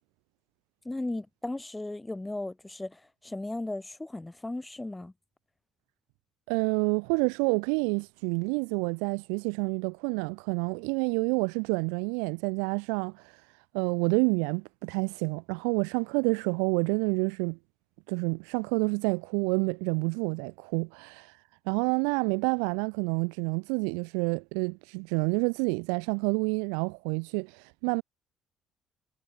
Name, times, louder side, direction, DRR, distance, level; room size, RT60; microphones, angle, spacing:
voice 1, 0.8-5.1, left 2 dB, 15° left, 1.0 m, -36 dB
voice 2, 6.5-13.4 13.7-17.6 18.1-28.0, right 40 dB or more, 80° right, 0.7 m, -28 dB
hypercardioid pair, 55°, 0 cm